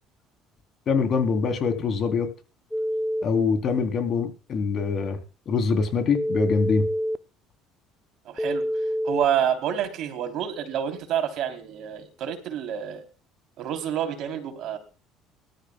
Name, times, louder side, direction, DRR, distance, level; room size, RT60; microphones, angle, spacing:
voice 1, 0.9-2.3 3.2-5.2 5.5-6.9, left 5 dB, 50° left, 6 dB, 3.4 m, -24 dB
Telephone, 2.7-3.2 6.1-7.2 8.4-9.2, equal, 5° left, 0.8 m, -26 dB
voice 2, 8.3-8.6 9.0-13.0 13.6-14.8, right 9 dB, 65° right, 6 dB, 3.3 m, -28 dB
20.5 x 13.0 x 2.3 m, 0.34 s
supercardioid pair, 85°, 0 cm